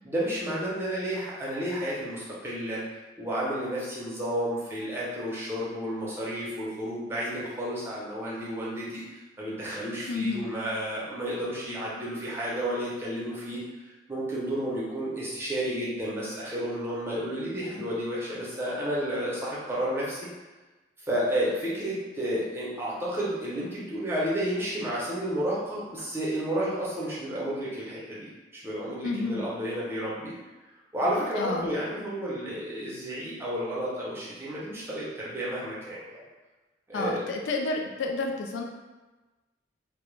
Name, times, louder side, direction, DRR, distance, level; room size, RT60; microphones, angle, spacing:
voice 1, 0.0-2.8 3.2-13.6 14.1-20.3 21.0-28.3 28.5-30.3 30.9-36.2 36.9-37.3, equal, 15° right, -7 dB, 0.6 m, -31 dB
voice 2, 10.1-10.5 29.0-29.4 31.4-31.7 36.9-38.6, left 3 dB, 85° left, 2 dB, 0.3 m, -30 dB
2.3 x 2.0 x 3.0 m, 1.2 s
head